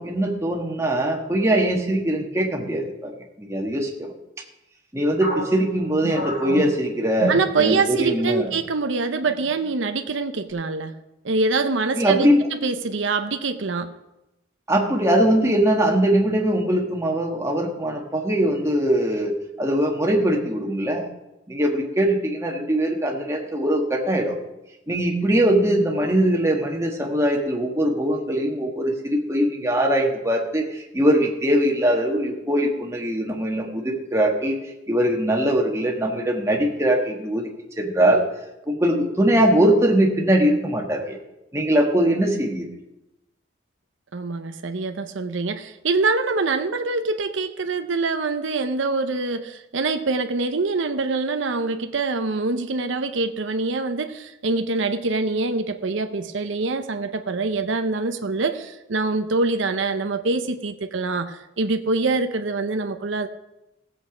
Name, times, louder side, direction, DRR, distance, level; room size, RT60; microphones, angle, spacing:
voice 1, 0.0-4.1 4.9-8.5 11.9-12.4 14.7-21.1 21.5-24.4 24.9-34.6 34.9-37.5 37.8-38.2 38.7-41.2 41.5-42.7, right 1 dB, 15° right, 0 dB, 1.6 m, -21 dB
sound 1, 5.2-8.1 8.4-8.6 9.2-9.7, equal, 85° left, 2.9 m, -31 dB
voice 2, 7.3-10.9 11.2-12.3 12.6-13.9 44.1-63.3, right 3 dB, 80° right, 8 dB, 0.7 m, -24 dB
16.5 x 7.8 x 5.1 m, 0.94 s
head